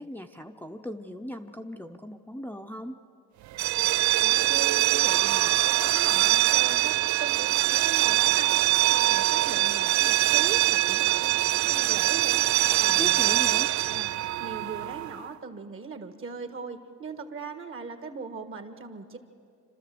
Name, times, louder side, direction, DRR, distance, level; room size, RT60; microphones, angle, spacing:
voice 1, 0.0-3.0 13.0-13.7, left 1 dB, 5° left, 4 dB, 0.7 m, -38 dB
sound 1, 3.5-15.2, right 15 dB, 70° right, 0.5 m, -23 dB
voice 2, 4.1-14.1 14.4-19.2, right 5 dB, 45° right, 8 dB, 1.7 m, -40 dB
27.0 x 13.0 x 7.8 m, 2.5 s
cardioid pair, 90°, 30 cm